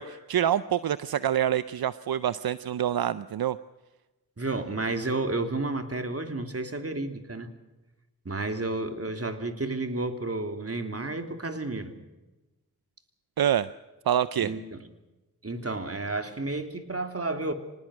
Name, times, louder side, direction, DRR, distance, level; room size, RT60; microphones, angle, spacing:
voice 1, 0.0-3.6 13.4-13.7 14.1-14.5, right 10 dB, 75° right, 15 dB, 0.6 m, -26 dB
voice 2, 4.4-7.5 8.2-11.9 14.4-14.8 15.4-17.5, right 2 dB, 40° right, 6 dB, 3.1 m, -31 dB
25.0 x 19.5 x 6.4 m, 1.1 s
cardioid pair, 45°, 37 cm